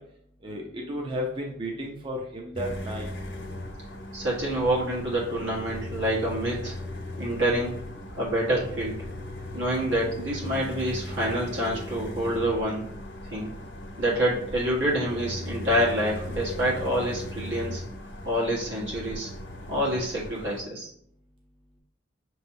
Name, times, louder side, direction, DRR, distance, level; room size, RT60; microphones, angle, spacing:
voice 1, 0.4-3.1, equal, 25° right, 0 dB, 0.5 m, -33 dB
sound 1, 2.6-20.6, left 1 dB, 75° left, 0.9 m, -38 dB
voice 2, 4.1-6.8 7.2-7.8 8.2-9.0 9.5-12.9 13.3-13.5 14.0-17.8 18.2-19.3 19.7-20.9, right 1 dB, 80° right, -4 dB, 1.5 m, -27 dB
5.8 x 3.1 x 2.7 m, 0.67 s
head